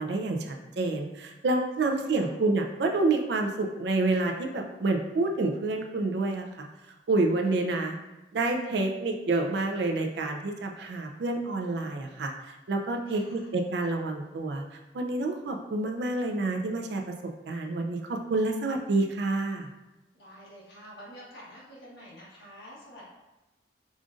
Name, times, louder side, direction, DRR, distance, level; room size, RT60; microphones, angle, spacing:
voice 1, 0.0-6.5 7.1-8.0 8.3-12.3 12.7-14.6 14.9-17.1 17.5-19.7, right 2 dB, 65° right, 3 dB, 0.4 m, -28 dB
voice 2, 1.8-2.3 7.5-7.7 13.1-13.5 20.1-23.0, equal, 65° left, -6 dB, 1.3 m, -48 dB
5.0 x 2.5 x 2.4 m, 1.0 s
head